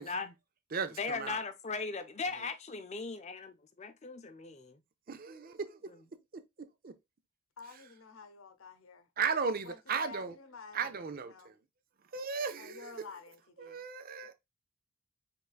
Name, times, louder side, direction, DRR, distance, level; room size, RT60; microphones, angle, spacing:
voice 1, 0.0-0.3 1.0-3.5 3.8-4.8, left 4 dB, 30° left, 0.5 m, -38 dB
voice 2, 0.7-1.4 5.1-6.0 6.3-7.0 9.2-10.3 10.7-11.5 12.1-12.9 13.6-14.3, right 5 dB, 45° right, 0.5 m, -36 dB
voice 3, 7.6-11.5 12.6-13.8, left 4 dB, 70° left, 0.8 m, -51 dB
4.8 x 3.4 x 2.4 m
head